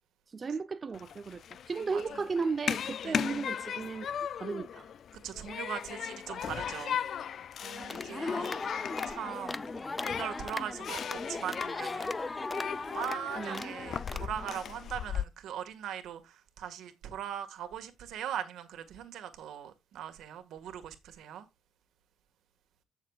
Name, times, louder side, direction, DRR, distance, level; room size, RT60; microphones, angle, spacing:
voice 1, 0.3-1.4 1.7-4.1 4.4-4.9 13.4-13.7, right 4 dB, 35° right, 0.7 m, -35 dB
Human group actions, 0.9-15.2, left 8 dB, 60° left, 0.4 m, -38 dB
voice 2, 1.9-2.2 3.0-3.3 5.2-7.0 7.6-9.7 10.0-12.1 12.9-21.5, right 10 dB, 80° right, 1.7 m, -40 dB
sound 1, 7.8-14.6, left 3 dB, 25° left, 0.6 m, -38 dB
14.5 x 6.6 x 2.4 m
cardioid pair, 90°, 0 cm